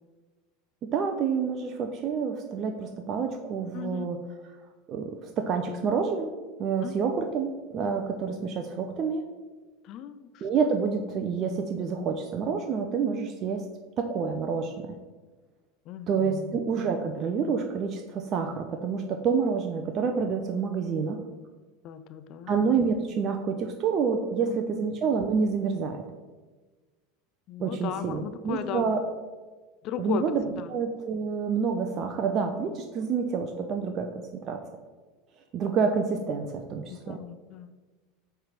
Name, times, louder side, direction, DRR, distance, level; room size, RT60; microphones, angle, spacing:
voice 1, 0.8-4.5 4.9-9.2 10.4-13.6 14.0-15.0 16.1-21.2 22.5-26.0 27.6-29.0 30.0-30.4 30.7-34.6 35.5-37.2, right 5 dB, 45° right, 5 dB, 0.7 m, -28 dB
voice 2, 3.7-4.1 6.8-7.1 9.8-10.5 15.9-16.5 21.8-22.5 24.5-24.6 27.5-28.9 29.8-30.2 30.6-30.7 36.9-37.7, left 10 dB, 50° left, 11 dB, 0.5 m, -36 dB
8.6 x 3.5 x 5.9 m, 1.3 s
hypercardioid pair, 85°, 0 cm